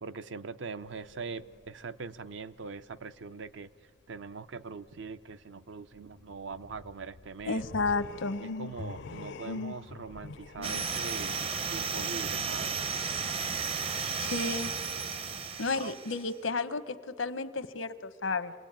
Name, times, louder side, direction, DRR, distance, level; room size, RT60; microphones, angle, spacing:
voice 1, 0.0-3.7 4.1-7.6 8.4-12.7 15.7-15.9, right 4 dB, 65° right, 13 dB, 0.6 m, -42 dB
sound 1, 0.8-1.7 2.0-2.1 6.0-11.0, left 3 dB, 60° left, 0.5 m, -43 dB
voice 2, 7.4-8.4 10.2-10.3 14.2-14.7 15.6-18.5, left 3 dB, 85° left, 12 dB, 1.0 m, -32 dB
sound 2, 10.6-16.3, right 5 dB, 30° right, 0.7 m, -33 dB
27.5 x 19.0 x 8.8 m, 2.1 s
head